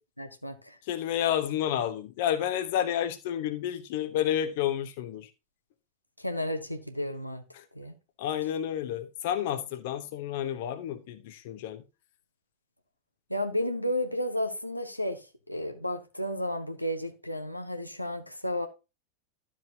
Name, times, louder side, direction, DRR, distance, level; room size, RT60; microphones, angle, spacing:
voice 1, 0.2-0.8 6.2-7.4 7.7-7.9 13.3-18.7, left 1 dB, 90° left, 1.0 m, -32 dB
voice 2, 0.8-5.3 7.5-7.6 8.2-11.8, left 10 dB, 50° left, 1.1 m, -30 dB
12.0 x 7.3 x 2.8 m
figure-of-eight pair, 90°, 0 cm